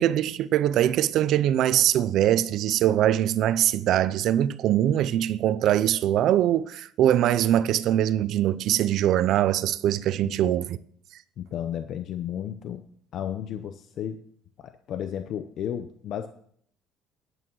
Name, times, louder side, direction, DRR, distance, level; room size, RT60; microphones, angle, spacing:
voice 1, 0.0-10.8, right 12 dB, 55° right, 0.5 m, -22 dB
voice 2, 10.2-10.6 11.4-12.8 13.1-14.2 14.6-16.3, left 9 dB, 45° left, 0.6 m, -33 dB
11.0 x 8.4 x 6.3 m
cardioid pair, 170°, 0 cm